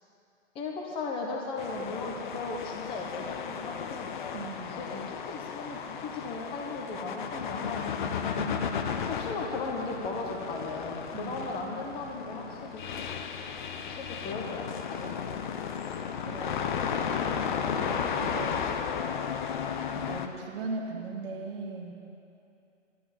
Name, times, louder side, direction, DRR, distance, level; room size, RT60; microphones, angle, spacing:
voice 1, 0.5-4.1 4.7-8.3 9.1-12.8 13.9-15.5, left 3 dB, 15° left, -1 dB, 1.2 m, -37 dB
sound 1, 1.6-20.3, left 7 dB, 40° left, 0.8 m, -34 dB
voice 2, 4.3-4.8 8.4-9.1 11.1-11.8 16.3-18.9 19.9-21.9, right 3 dB, 50° right, 0 dB, 2.0 m, -39 dB
11.5 x 11.0 x 7.5 m, 2.6 s
hypercardioid pair, 155°, 37 cm